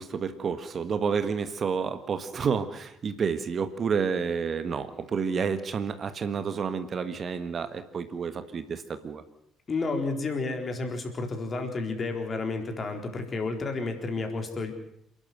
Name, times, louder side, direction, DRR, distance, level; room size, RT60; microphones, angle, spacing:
voice 1, 0.0-9.2, right 6 dB, 45° right, 11 dB, 1.6 m, -30 dB
voice 2, 9.7-14.7, left 3 dB, 35° left, 5 dB, 4.0 m, -31 dB
28.0 x 11.5 x 8.0 m, 0.74 s
figure-of-eight pair, 45°, 0 cm